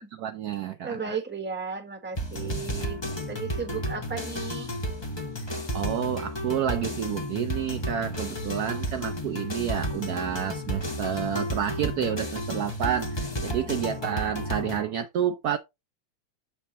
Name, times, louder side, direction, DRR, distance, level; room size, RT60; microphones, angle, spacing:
voice 1, 0.0-1.2 5.7-15.6, right 9 dB, 80° right, 0.8 m, -29 dB
voice 2, 0.8-3.0 3.3-4.7, right 5 dB, 10° right, 0.8 m, -35 dB
sound 1, 2.1-14.8, equal, 30° left, 0.5 m, -32 dB
7.3 x 6.6 x 2.8 m
omnidirectional pair, 2.3 m